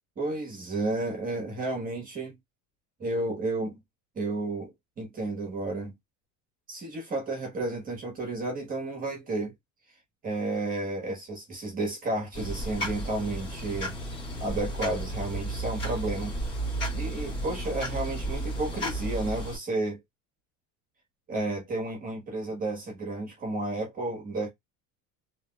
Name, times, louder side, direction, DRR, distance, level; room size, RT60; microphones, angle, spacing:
voice 1, 0.2-2.3 3.0-3.8 4.1-4.7 5.0-5.9 6.7-9.5 10.2-14.0 14.4-16.3 16.9-20.0 21.3-24.5, right 2 dB, 25° right, 1.3 m, -32 dB
sound 1, 12.3-19.6, right 1 dB, 30° left, 2.1 m, -33 dB
3.4 x 3.1 x 2.3 m
cardioid pair, 175°, 36 cm